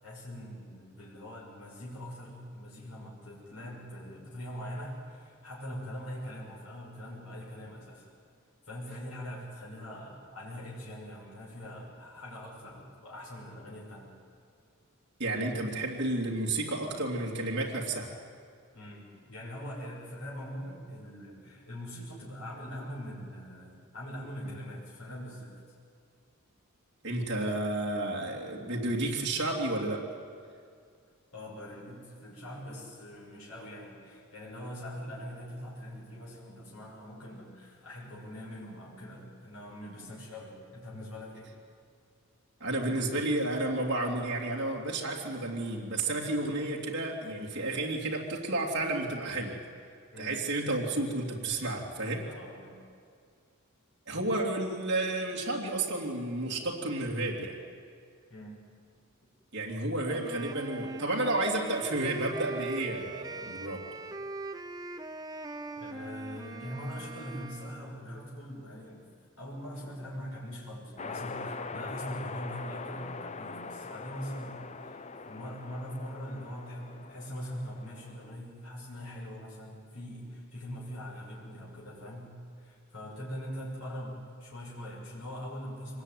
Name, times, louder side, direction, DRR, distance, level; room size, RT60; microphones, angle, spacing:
voice 1, 0.0-8.1 8.7-14.1 18.7-25.6 31.3-41.5 50.1-50.4 52.2-52.8 58.3-58.6 65.8-69.1 69.4-86.0, equal, 70° left, -5 dB, 6.1 m, -42 dB
voice 2, 15.2-18.1 27.0-30.0 42.6-49.6 50.2-52.2 54.1-57.6 59.5-63.8, right 2 dB, 50° right, -2 dB, 3.1 m, -31 dB
Wind instrument woodwind instrument, 60.1-68.0, right 2 dB, 15° right, 0.7 m, -41 dB
sound 1, 71.0-78.3, left 4 dB, 30° left, 0.7 m, -42 dB
24.5 x 20.0 x 9.4 m, 2.2 s
head